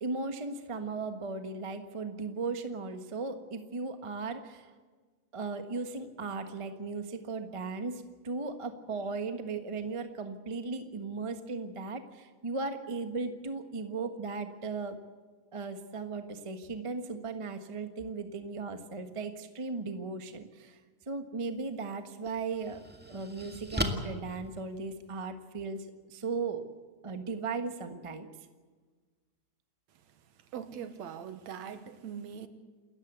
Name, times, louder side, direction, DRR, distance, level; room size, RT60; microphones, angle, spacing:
voice 1, 0.0-4.7 5.3-15.0 15.5-20.8 21.1-22.8 23.1-26.6 27.0-28.3, right 4 dB, 35° right, 7 dB, 0.5 m, -37 dB
sound 1, 21.5-21.7 22.2-25.3, left 1 dB, 5° right, 1.2 m, -37 dB
voice 2, 30.5-32.5, right 8 dB, 70° right, 10 dB, 2.5 m, -41 dB
28.5 x 14.5 x 8.2 m, 1.4 s
omnidirectional pair, 3.4 m